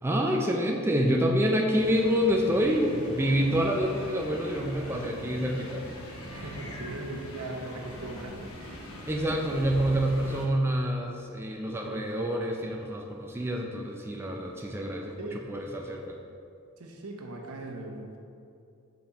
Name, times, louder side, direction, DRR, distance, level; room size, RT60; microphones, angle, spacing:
voice 1, 0.0-5.8 9.1-16.2, equal, 10° right, 0 dB, 0.4 m, -27 dB
sound 1, 1.7-10.5, equal, 80° left, 1.0 m, -42 dB
voice 2, 2.9-3.6 6.3-8.5 11.8-12.2 15.2-15.4 16.8-18.2, right 2 dB, 90° right, 1 dB, 0.9 m, -40 dB
5.8 x 5.2 x 4.1 m, 2.5 s
head